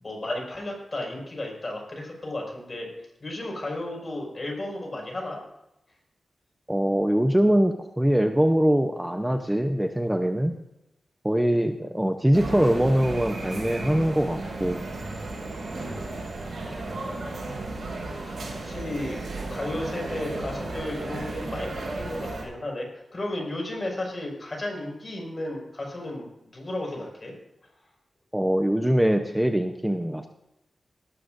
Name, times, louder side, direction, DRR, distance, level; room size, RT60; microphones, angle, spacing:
voice 1, 0.0-2.9 3.2-5.4 17.3-17.9 18.2-19.2 19.5-26.3 26.5-27.3, left 1 dB, 35° left, -1 dB, 5.6 m, -34 dB
voice 2, 6.7-10.6 11.2-14.9 28.3-30.3, equal, 10° right, 5 dB, 0.8 m, -23 dB
sound 1, 12.3-22.4, right 2 dB, 70° right, 5.5 m, -34 dB
18.5 x 12.5 x 2.6 m, 0.89 s
wide cardioid pair, 105°, 0 cm